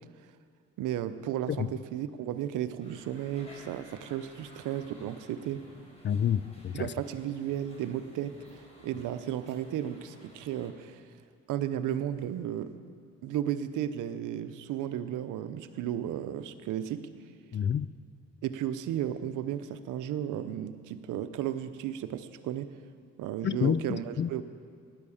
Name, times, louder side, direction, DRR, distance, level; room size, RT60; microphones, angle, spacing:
voice 1, 0.8-5.6 6.7-11.1 11.5-12.7 13.2-17.1 18.4-22.7 23.2-24.4, right 11 dB, 90° right, 11 dB, 0.8 m, -34 dB
sound 1, 2.8-10.7, equal, 20° left, 5.3 m, -55 dB
voice 2, 6.0-6.9 17.5-17.9 23.4-24.3, left 8 dB, 40° left, 17 dB, 0.4 m, -29 dB
17.0 x 11.0 x 7.2 m, 2.2 s
cardioid pair, 90°, 30 cm